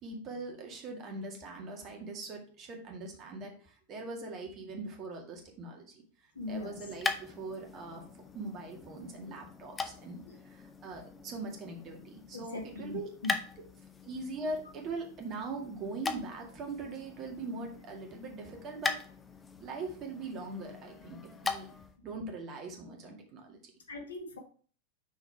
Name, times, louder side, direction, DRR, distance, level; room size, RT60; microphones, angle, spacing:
voice 1, 0.0-6.0 6.5-10.2 10.4-13.1 13.6-13.7 14.0-19.0 19.6-21.7 22.0-23.7, right 3 dB, 35° right, 2 dB, 2.0 m, -41 dB
voice 2, 6.3-6.8 10.1-10.4 12.3-13.3 23.9-24.4, left 3 dB, 70° left, 3 dB, 1.5 m, -40 dB
sound 1, 6.3-22.0, left 4 dB, 15° left, 0.7 m, -41 dB
6.2 x 5.0 x 4.6 m, 0.43 s
figure-of-eight pair, 90°, 0 cm